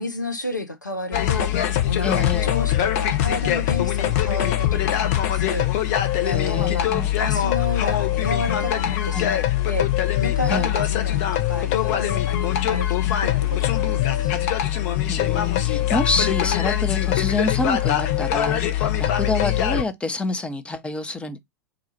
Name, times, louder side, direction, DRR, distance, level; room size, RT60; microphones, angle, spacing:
voice 1, 0.0-1.6 1.9-5.9 6.2-6.9 7.2-9.9 10.2-14.3, left 2 dB, 90° left, 0.7 m, -31 dB
sound 1, 1.1-19.8, left 12 dB, 50° left, 0.7 m, -22 dB
voice 2, 2.0-2.5 6.2-7.1 9.1-9.4 10.4-10.7 15.1-21.4, left 2 dB, 10° left, 0.7 m, -27 dB
3.8 x 2.4 x 4.2 m
figure-of-eight pair, 90°, 10 cm